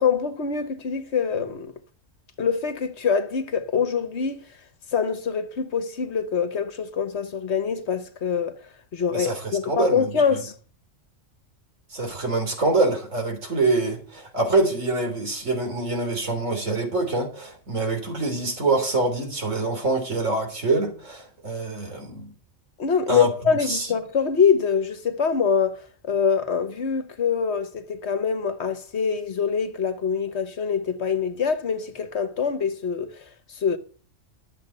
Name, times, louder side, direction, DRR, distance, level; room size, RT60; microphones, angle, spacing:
voice 1, 0.0-1.7 2.4-4.4 4.9-8.6 8.9-10.5 22.8-33.8, left 6 dB, 60° left, 1.4 m, -24 dB
voice 2, 9.1-10.4 11.9-22.3 23.1-23.3 23.7-23.9, right 2 dB, 80° right, 3.7 m, -25 dB
12.5 x 7.5 x 6.7 m
omnidirectional pair, 1.3 m